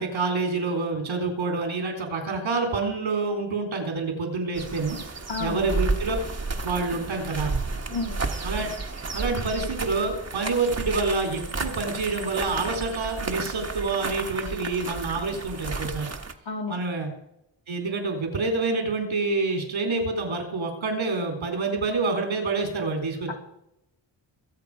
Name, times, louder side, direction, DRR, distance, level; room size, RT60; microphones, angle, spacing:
voice 1, 0.0-5.0 5.4-6.2 6.6-7.6 8.4-8.7 9.1-16.1 16.7-17.1 17.7-23.3, right 3 dB, 85° right, 3 dB, 4.1 m, -27 dB
sound 1, 4.6-16.3, right 3 dB, 35° right, 1.4 m, -32 dB
voice 2, 5.3-5.7 7.9-8.2 16.5-16.8, left 4 dB, 75° left, 0 dB, 2.8 m, -31 dB
23.5 x 7.8 x 5.1 m, 0.83 s
wide cardioid pair, 85°, 47 cm